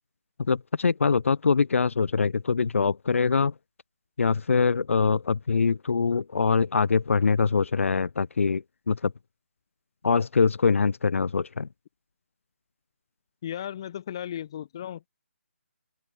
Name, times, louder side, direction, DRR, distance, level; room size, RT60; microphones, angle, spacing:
voice 1, 0.5-3.5 4.2-9.1 10.0-11.7, left 5 dB, 80° left, 0.4 m, -23 dB
voice 2, 13.4-15.1, left 10 dB, 20° left, 1.0 m, -35 dB
open air
hypercardioid pair, 175°, 7 cm